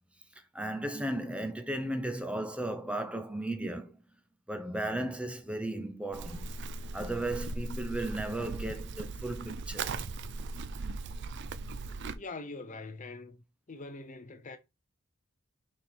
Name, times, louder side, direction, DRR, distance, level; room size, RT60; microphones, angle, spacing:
voice 1, 0.5-4.0 4.5-6.4 6.9-10.0, right 1 dB, 5° right, 0.7 m, -35 dB
Livestock farm animals working animals, 6.1-12.2, right 3 dB, 55° right, 0.5 m, -38 dB
voice 2, 12.1-14.6, left 3 dB, 35° left, 0.6 m, -43 dB
6.3 x 4.4 x 3.4 m
head